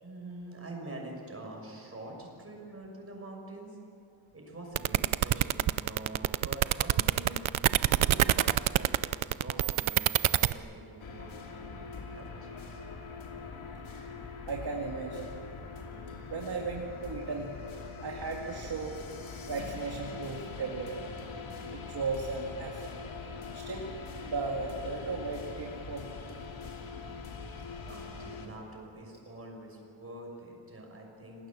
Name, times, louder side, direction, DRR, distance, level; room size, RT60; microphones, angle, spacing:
voice 1, 0.0-3.8 4.3-7.4 7.7-12.8 27.9-31.5, right 1 dB, 30° right, 0 dB, 6.2 m, -45 dB
sound 1, 4.7-10.5, right 13 dB, 75° right, 0.7 m, -25 dB
sound 2, 11.0-28.5, left 4 dB, 75° left, 2.8 m, -43 dB
voice 2, 14.5-15.3 16.3-17.6 18.0-21.1 21.7-22.9 23.5-23.9 24.2-26.0 27.1-27.2, right 4 dB, 50° right, 0 dB, 2.2 m, -36 dB
28.0 x 19.0 x 7.5 m, 2.6 s
wide cardioid pair, 120°, 48 cm